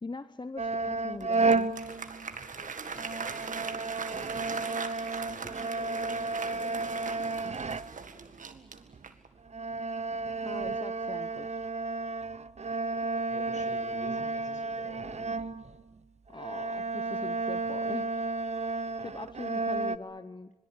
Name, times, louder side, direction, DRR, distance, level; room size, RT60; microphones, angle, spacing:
voice 1, 0.0-1.7 10.4-11.6 16.3-18.1 18.6-20.5, left 3 dB, 35° left, 13 dB, 0.9 m, -42 dB
sound 1, 0.6-2.6 2.9-8.2 8.9-9.0 9.5-16.0 16.3-20.0, right 3 dB, 60° right, 0.9 m, -32 dB
Applause, 1.2-9.3, right 5 dB, 80° right, 1.9 m, -40 dB
voice 2, 2.4-4.7 5.1-6.8 13.3-15.3, left 2 dB, 65° left, 5 dB, 6.6 m, -49 dB
26.5 x 21.0 x 8.2 m, 1.2 s
cardioid pair, 40°, 13 cm